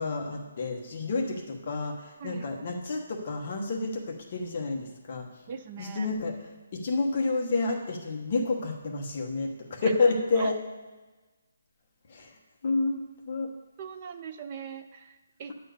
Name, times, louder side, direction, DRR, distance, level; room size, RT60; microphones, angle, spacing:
voice 1, 0.0-5.2 5.8-6.3 6.7-10.5 12.1-12.3 12.6-13.5, left 3 dB, 30° left, 1 dB, 1.1 m, -29 dB
voice 2, 5.5-6.1 9.8-9.9 10.4-10.5 13.8-15.5, right 7 dB, 20° right, 7 dB, 0.5 m, -40 dB
10.5 x 4.4 x 7.9 m, 1.2 s
hypercardioid pair, 180°, 0 cm